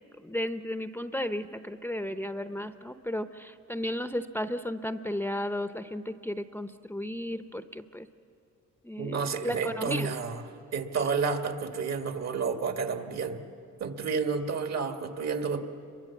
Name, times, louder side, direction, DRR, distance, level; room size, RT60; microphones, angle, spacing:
voice 1, 0.2-8.1 8.8-10.1, left 1 dB, 5° left, 9 dB, 0.7 m, -34 dB
voice 2, 9.0-10.4 10.7-13.4 13.8-15.6, right 5 dB, 60° right, 6 dB, 1.8 m, -30 dB
29.0 x 23.0 x 7.2 m, 2.8 s
cardioid pair, 90°, 30 cm